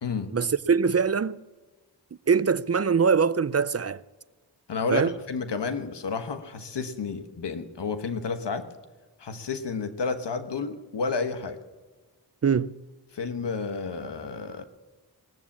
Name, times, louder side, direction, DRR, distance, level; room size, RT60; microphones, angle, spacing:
voice 1, 0.3-1.4 2.3-4.0 4.9-5.1 12.4-12.7, right 6 dB, 35° right, 0.5 m, -23 dB
voice 2, 4.7-8.7 9.2-11.6 13.1-14.6, left 4 dB, 75° left, 1.2 m, -31 dB
20.0 x 7.1 x 8.6 m
cardioid pair, 45°, 42 cm